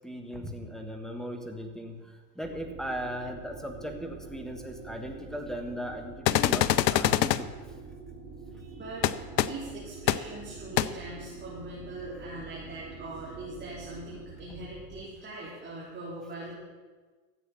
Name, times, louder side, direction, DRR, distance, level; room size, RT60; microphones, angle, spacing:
voice 1, 0.0-7.5, equal, ahead, 4 dB, 1.6 m, -38 dB
sound 1, 2.4-15.1, right 4 dB, 45° right, 3.9 m, -46 dB
sound 2, 6.3-7.4 9.0-9.1 9.4-9.5 10.1-10.2 10.8-10.9, left 12 dB, 80° left, 0.7 m, -23 dB
voice 2, 8.5-9.1 9.5-16.5, right 2 dB, 20° right, -7 dB, 4.0 m, -41 dB
14.0 x 8.3 x 7.1 m, 1.4 s
hypercardioid pair, 110°, 49 cm